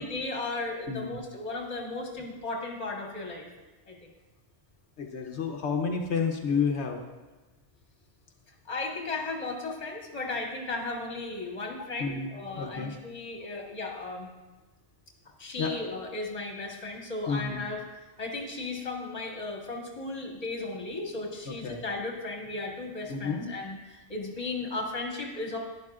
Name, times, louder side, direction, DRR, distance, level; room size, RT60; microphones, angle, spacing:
voice 1, 0.0-3.5 3.9-4.1 8.7-14.3 15.4-17.8 18.2-25.6, left 3 dB, 35° left, -1 dB, 1.5 m, -35 dB
voice 2, 0.9-1.2 1.9-2.0 5.0-7.0 12.0-12.9 15.6-15.8 17.3-17.6 21.5-21.8 23.1-23.5, left 5 dB, 80° left, 3 dB, 1.2 m, -30 dB
12.0 x 10.5 x 2.5 m, 1.2 s
omnidirectional pair, 1.1 m